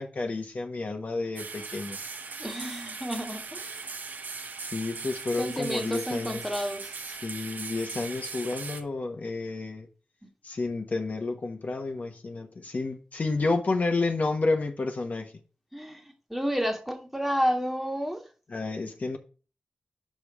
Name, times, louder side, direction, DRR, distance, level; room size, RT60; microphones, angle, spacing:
voice 1, 0.0-2.0 4.6-6.4 7.2-9.9 10.4-15.3 18.5-19.2, left 3 dB, 55° left, 1.1 m, -30 dB
sound 1, 1.4-8.8, right 4 dB, 75° right, 1.2 m, -39 dB
voice 2, 2.4-3.9 5.4-7.2 15.7-16.0 16.3-18.2, equal, 5° right, 1.6 m, -31 dB
5.4 x 5.2 x 6.1 m
cardioid pair, 65°, 3 cm